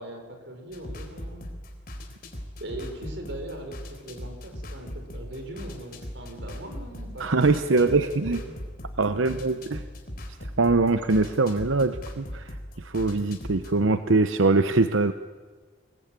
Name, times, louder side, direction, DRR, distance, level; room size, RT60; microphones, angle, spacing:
voice 1, 0.0-1.5 2.6-8.5 9.1-9.4, right 1 dB, 65° right, 5 dB, 4.9 m, -40 dB
sound 1, 0.7-13.8, equal, 50° left, 3.9 m, -40 dB
voice 2, 7.2-8.4 9.0-9.8 10.6-15.1, right 3 dB, 85° right, 10 dB, 0.8 m, -23 dB
25.5 x 21.0 x 8.9 m, 1.5 s
head